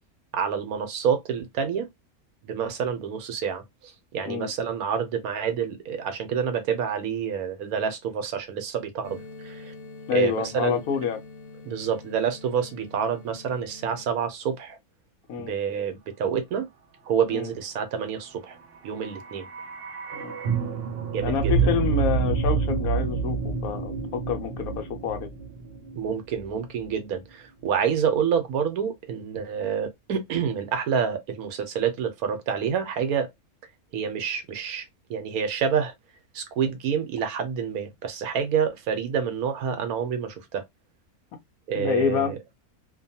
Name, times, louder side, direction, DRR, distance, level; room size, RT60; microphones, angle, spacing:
voice 1, 0.3-1.9 2.4-9.7 10.1-10.8 11.6-14.8 15.4-16.7 17.1-18.6 18.8-19.5 21.0-21.5 25.9-33.3 33.9-34.8 35.1-35.9 36.3-40.6 41.7-42.4, right 7 dB, 80° right, 1.2 m, -28 dB
sound 1, 9.0-14.0, left 3 dB, 60° left, 0.9 m, -45 dB
voice 2, 10.1-11.2 15.3-15.5 17.3-17.5 20.2-20.3 21.2-25.3 41.7-42.3, left 7 dB, 75° left, 1.1 m, -27 dB
sound 2, 18.8-26.9 27.1-27.2, right 5 dB, 55° right, 0.6 m, -28 dB
2.8 x 2.2 x 2.6 m
omnidirectional pair, 1.6 m